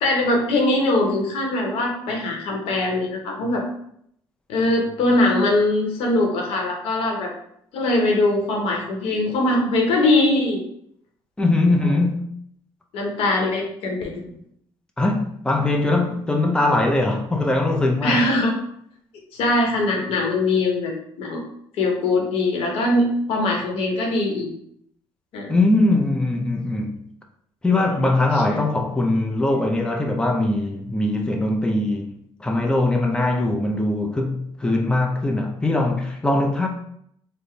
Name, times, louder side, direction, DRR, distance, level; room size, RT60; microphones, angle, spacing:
voice 1, 0.0-3.6 4.5-7.3 7.7-10.6 11.8-12.0 12.9-14.3 18.0-18.5 19.3-21.4 21.8-24.5 25.3-25.5, left 2 dB, 75° left, 0.9 m, -21 dB
voice 2, 11.4-12.2 15.0-18.2 25.5-27.0 27.6-32.1 32.4-36.7, left 2 dB, 10° left, 0.5 m, -21 dB
3.8 x 2.1 x 3.2 m
supercardioid pair, 80°, 10 cm